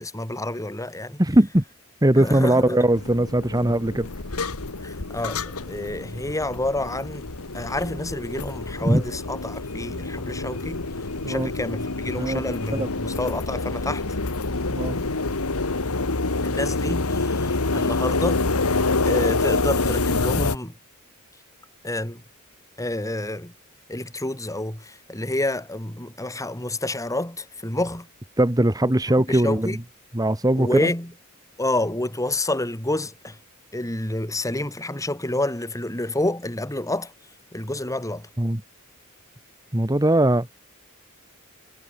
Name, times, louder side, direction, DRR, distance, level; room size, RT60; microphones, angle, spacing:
voice 1, 0.0-1.2 2.2-2.8 4.8-7.2 7.5-10.8 11.3-14.0 16.4-18.4 19.0-20.7 21.8-22.2 22.8-23.5 23.9-28.1 29.3-29.8 30.5-31.1 31.6-33.4 33.7-37.1 37.5-38.3, left 1 dB, 15° left, 3.3 m, -28 dB
voice 2, 1.2-1.6 2.0-4.1 8.8-9.0 11.2-11.5 12.2-12.4 12.8-12.9 14.7-15.0 28.4-29.8 30.1-30.9 38.4-38.6 39.7-40.5, right 1 dB, 15° right, 1.5 m, -20 dB
sound 1, 2.9-20.6, left 3 dB, 80° left, 1.8 m, -27 dB
head